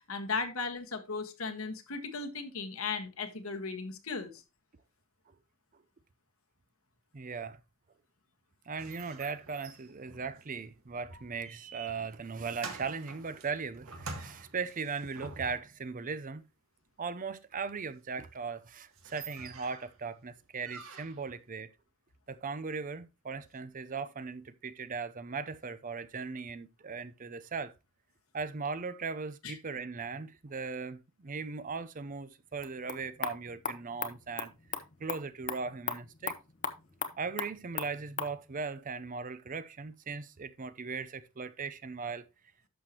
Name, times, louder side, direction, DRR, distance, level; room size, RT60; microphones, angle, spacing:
voice 1, 0.1-4.4 29.4-29.5, left 4 dB, 80° left, 1.5 m, -36 dB
voice 2, 7.1-7.6 8.7-16.4 17.0-21.7 22.3-27.7 28.3-34.5 35.0-36.3 37.2-42.2, right 5 dB, 40° right, 0.6 m, -38 dB
sound 1, 8.8-15.8 18.2-18.3 18.6-18.7 18.9-20.0 20.6-21.4, right 3 dB, 80° right, 1.7 m, -47 dB
sound 2, 32.5-38.4, left 7 dB, 40° left, 0.9 m, -39 dB
11.0 x 6.6 x 2.9 m
head